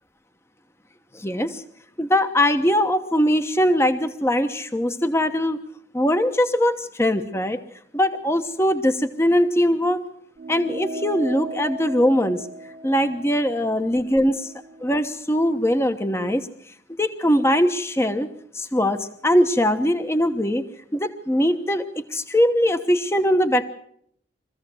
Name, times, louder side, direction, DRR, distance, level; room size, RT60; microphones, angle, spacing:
voice 1, 1.1-1.6 2.0-5.6 5.9-7.6 7.9-10.0 10.5-12.5 12.8-14.5 14.8-16.5 17.0-18.3 18.5-20.6 20.9-21.8 22.1-23.6, equal, 15° left, 8 dB, 1.1 m, -21 dB
sound 1, 10.4-15.2, right 2 dB, 45° right, 1.5 m, -37 dB
24.0 x 15.0 x 7.8 m, 0.69 s
head